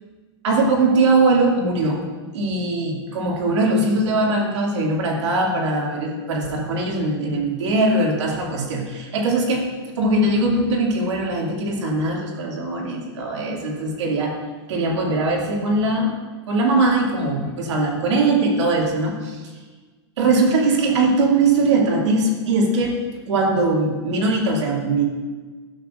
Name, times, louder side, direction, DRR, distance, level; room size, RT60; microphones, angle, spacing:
voice 1, 0.4-2.0 2.3-9.7 10.0-14.4 14.7-16.1 16.5-19.4 20.2-23.0 23.3-25.0, right 2 dB, 90° right, -2 dB, 2.4 m, -21 dB
14.5 x 7.1 x 2.5 m, 1.4 s
supercardioid pair, 160°, 14 cm